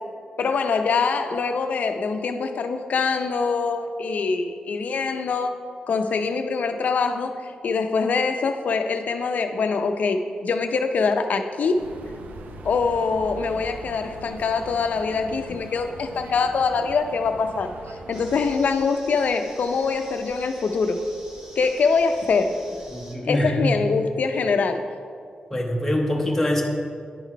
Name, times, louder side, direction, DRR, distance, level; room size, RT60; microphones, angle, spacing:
voice 1, 0.4-5.6 5.9-11.8 12.6-21.1 21.6-22.6 23.2-24.9, left 4 dB, 65° left, 7 dB, 0.5 m, -24 dB
sound 1, 11.8-18.7, right 2 dB, 80° right, 0.5 m, -41 dB
sound 2, 18.1-23.2, right 1 dB, 25° right, 1.0 m, -45 dB
voice 2, 22.9-23.7 25.5-26.6, left 1 dB, 10° left, 0 dB, 0.8 m, -24 dB
10.0 x 3.8 x 4.6 m, 2.2 s
wide cardioid pair, 135°, 3 cm